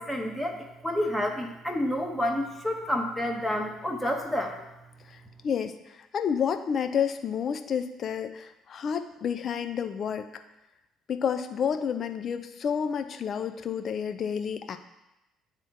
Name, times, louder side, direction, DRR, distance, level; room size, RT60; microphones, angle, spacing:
voice 1, 0.0-4.5, left 1 dB, ahead, 0 dB, 1.0 m, -29 dB
voice 2, 5.1-10.3 11.1-14.8, left 7 dB, 45° left, 9 dB, 0.5 m, -30 dB
9.8 x 3.5 x 2.8 m, 0.96 s
figure-of-eight pair, 55°, 0 cm